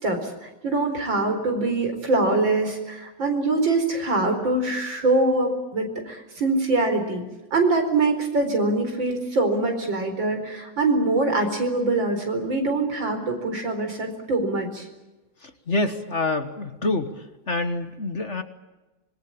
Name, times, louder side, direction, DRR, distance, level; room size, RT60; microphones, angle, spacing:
voice 1, 0.0-7.2 7.5-14.9, right 2 dB, 75° right, 5 dB, 5.2 m, -24 dB
voice 2, 15.4-17.1 17.5-18.4, left 2 dB, 40° left, 8 dB, 1.6 m, -26 dB
25.5 x 21.5 x 8.8 m, 1.1 s
omnidirectional pair, 2.1 m